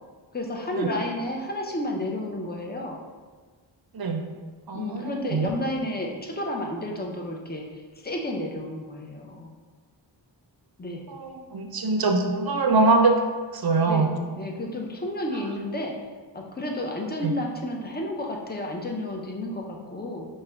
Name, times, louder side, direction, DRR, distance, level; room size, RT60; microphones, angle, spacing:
voice 1, 0.3-3.0 4.7-9.5 10.8-11.0 13.9-14.1 14.4-16.0 16.3-20.3, left 1 dB, 20° left, 1 dB, 0.5 m, -31 dB
voice 2, 4.7-5.5 11.1-13.1 13.5-14.1 17.2-17.3, right 3 dB, 55° right, 4 dB, 0.5 m, -23 dB
4.9 x 2.1 x 3.3 m, 1.4 s
wide cardioid pair, 60°, 45 cm